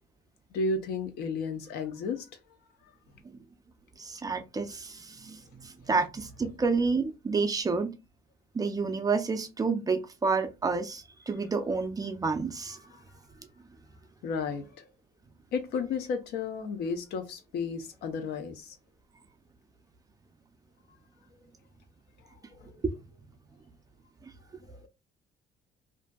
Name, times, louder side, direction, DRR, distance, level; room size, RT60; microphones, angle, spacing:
voice 1, 0.5-2.3 12.9-13.0 14.2-14.9 15.5-18.8 22.6-22.7, left 4 dB, 75° left, 0.6 m, -33 dB
voice 2, 4.0-7.9 8.5-12.8 22.8-22.9, right 4 dB, 20° right, 0.4 m, -29 dB
2.6 x 2.5 x 2.2 m
cardioid pair, 110°, 17 cm